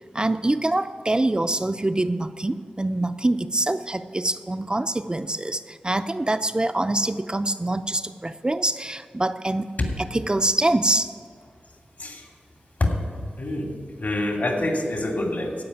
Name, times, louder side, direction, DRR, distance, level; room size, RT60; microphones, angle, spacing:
voice 1, 0.1-9.7 10.1-11.1, right 2 dB, 25° right, 8 dB, 0.5 m, -25 dB
voice 2, 12.0-12.3 12.8-12.9 13.4-13.7 14.0-15.6, left 1 dB, 60° left, 1 dB, 2.6 m, -26 dB
14.5 x 5.2 x 9.5 m, 2.1 s
cardioid pair, 40°, 3 cm